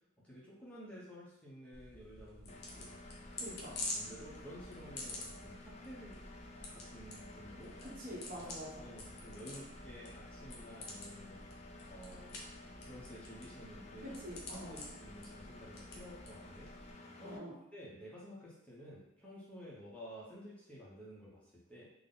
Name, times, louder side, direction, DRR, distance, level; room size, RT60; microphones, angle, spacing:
voice 1, 0.2-2.9 3.9-6.2 6.7-7.7 8.4-8.5 8.8-11.4 11.9-12.3 12.9-14.1 14.5-17.4 17.7-21.9, equal, 5° left, -7 dB, 0.7 m, -52 dB
sound 1, 1.7-16.9, left 2 dB, 55° left, 0.8 m, -49 dB
Engine, 2.5-17.4, left 2 dB, 35° left, 0.4 m, -53 dB
voice 2, 3.4-3.8 7.8-8.9 14.0-14.8 17.2-17.5, equal, 45° right, -4 dB, 1.0 m, -46 dB
3.7 x 2.1 x 3.7 m, 0.86 s
head